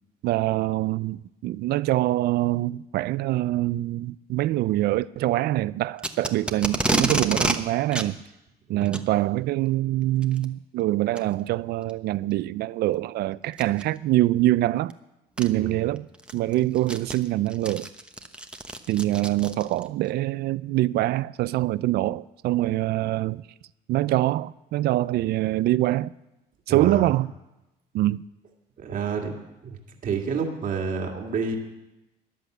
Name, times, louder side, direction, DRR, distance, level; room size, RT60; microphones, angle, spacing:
voice 1, 0.2-8.2 8.7-14.9 15.4-16.1 16.3-17.9 18.9-23.4 23.9-26.1 26.7-27.3 27.9-28.2, right 16 dB, 70° right, 0.5 m, -24 dB
Packing tape duct tape, 6.0-7.6 7.9-8.1 8.8-9.1 10.2-10.4 11.1-11.2 11.9-12.0 13.5-13.8 14.9-15.0 15.4-15.5 16.0-19.9, right 1 dB, 5° right, 1.0 m, -28 dB
voice 2, 26.7-27.1 28.8-29.3 29.6-31.6, right 5 dB, 50° right, 2.1 m, -29 dB
13.5 x 10.5 x 7.9 m
cardioid pair, 110°, 17 cm